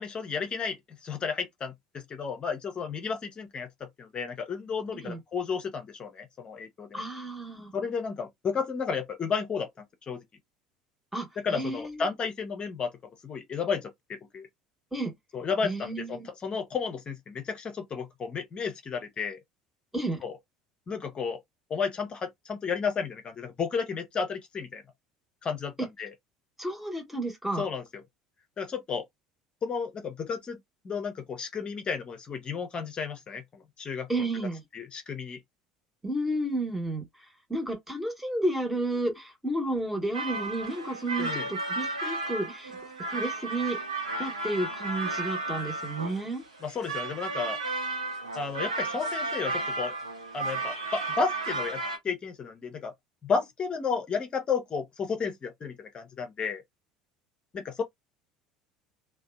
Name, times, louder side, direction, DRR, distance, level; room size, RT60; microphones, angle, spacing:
voice 1, 0.0-7.0 7.7-10.2 11.4-12.9 13.2-14.5 15.3-19.4 20.2-20.3 20.9-21.4 21.7-24.8 25.4-26.1 27.6-28.0 28.6-29.0 29.6-30.6 30.8-34.3 34.7-35.4 41.2-41.5 46.6-47.6 48.3-50.0 50.3-52.9 53.2-56.6 57.5-57.8, left 5 dB, 30° left, 0.7 m, -33 dB
voice 2, 6.9-7.7 11.1-12.1 14.9-15.1 15.6-16.3 19.9-20.2 26.6-27.7 34.1-34.6 36.0-37.1 37.5-42.8 43.1-43.8 44.2-46.4, right 1 dB, 5° right, 1.1 m, -31 dB
sound 1, 40.1-52.0, right 3 dB, 80° right, 0.8 m, -33 dB
2.6 x 2.1 x 2.2 m
figure-of-eight pair, 65°, 3 cm